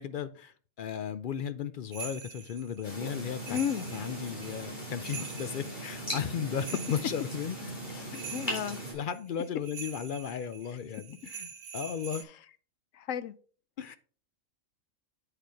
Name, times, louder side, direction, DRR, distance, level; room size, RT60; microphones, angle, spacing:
voice 1, 0.0-3.6 3.9-7.6 8.1-8.2 8.9-12.2 13.8-14.0, left 8 dB, 65° left, 0.5 m, -35 dB
sound 1, 1.9-12.2, right 6 dB, 70° right, 1.4 m, -45 dB
sound 2, 2.8-8.9, right 1 dB, 35° left, 4.0 m, -39 dB
voice 2, 3.5-3.9 7.9-8.1 8.3-8.8 12.9-13.3, left 9 dB, 85° left, 1.0 m, -33 dB
8.8 x 5.0 x 4.5 m
omnidirectional pair, 1.4 m